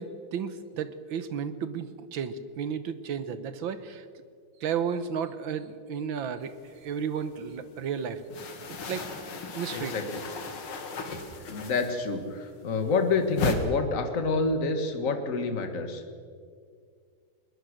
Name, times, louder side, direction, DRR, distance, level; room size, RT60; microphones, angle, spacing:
voice 1, 0.0-4.1 4.6-6.5 6.8-8.2 8.8-9.1 9.5-9.9, right 7 dB, 70° right, 12 dB, 1.8 m, -33 dB
sound 1, 6.5-7.5 7.8-12.3 12.5-13.5, left 4 dB, 80° left, 2.8 m, -36 dB
voice 2, 9.7-10.2 11.5-16.0, left 4 dB, 40° left, 7 dB, 1.9 m, -28 dB
21.0 x 21.0 x 6.5 m, 2.2 s
omnidirectional pair, 2.3 m